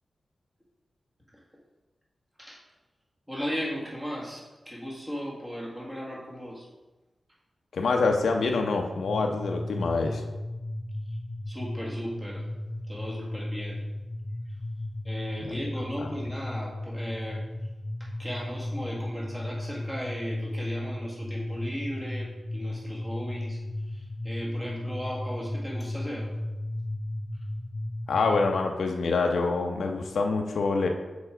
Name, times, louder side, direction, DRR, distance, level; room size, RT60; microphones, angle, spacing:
voice 1, 3.3-6.7 11.1-11.2 11.5-12.5 12.9-13.8 14.5-14.6 15.0-17.7 18.0-26.3, equal, 10° right, -4 dB, 1.7 m, -36 dB
voice 2, 7.7-10.2 16.0-16.1 28.1-30.9, left 3 dB, 85° left, 3 dB, 0.7 m, -26 dB
sound 1, 9.0-28.6, left 1 dB, 10° left, 0.4 m, -35 dB
6.9 x 4.8 x 4.5 m, 1.1 s
wide cardioid pair, 140°, 0 cm